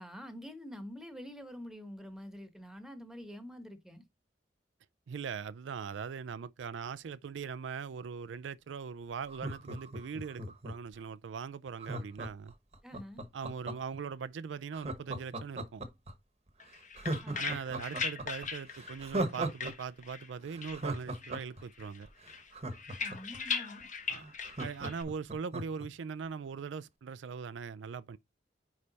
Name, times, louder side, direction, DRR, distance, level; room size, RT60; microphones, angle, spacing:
voice 1, 0.0-4.0 12.8-13.2 17.2-17.5 23.0-23.9, equal, ahead, 1.1 m, -46 dB
voice 2, 5.1-12.5 13.3-15.8 17.3-22.1 24.1-24.3 24.6-28.2, right 6 dB, 80° right, 0.4 m, -40 dB
Laughter, 9.2-10.9 11.8-14.0 14.7-16.1 16.5-16.6 16.9-19.7 20.0-20.1 20.5-23.4 23.8-23.9 24.1-25.9 26.2-26.3, right 2 dB, 35° right, 1.0 m, -38 dB
sound 1, 16.6-20.3 20.6-21.5 21.8-25.0, left 6 dB, 45° left, 1.3 m, -39 dB
9.6 x 3.3 x 4.1 m
head